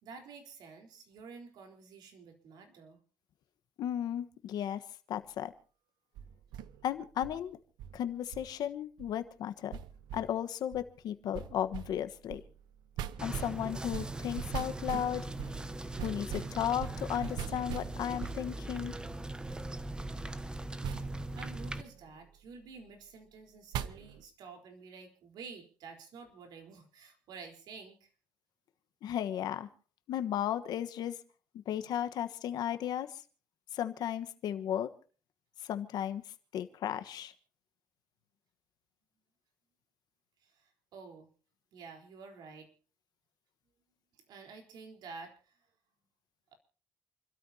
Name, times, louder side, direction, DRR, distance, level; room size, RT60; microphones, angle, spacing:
voice 1, 0.0-3.0 20.9-21.1 21.4-28.1 40.4-41.3 41.7-42.7 44.3-45.5, right 5 dB, 75° right, 4 dB, 4.1 m, -50 dB
voice 2, 3.8-4.8 5.1-5.5 6.8-7.6 7.9-9.8 10.1-12.4 13.2-15.3 16.0-18.9 29.0-29.7 30.1-31.2 31.5-33.2 33.7-34.9 35.6-36.2 36.5-37.3, left 10 dB, 70° left, 10 dB, 1.3 m, -35 dB
sound 1, 6.2-7.4 7.8-8.5 9.0-9.1 9.7-10.4 10.7-10.9 11.3-19.0 20.8-22.2 23.7-24.2, right 10 dB, 90° right, 0.9 m, -42 dB
sound 2, 13.2-21.8, right 2 dB, 10° right, 1.1 m, -40 dB
28.5 x 13.0 x 2.8 m, 0.39 s
cardioid pair, 130°, 7 cm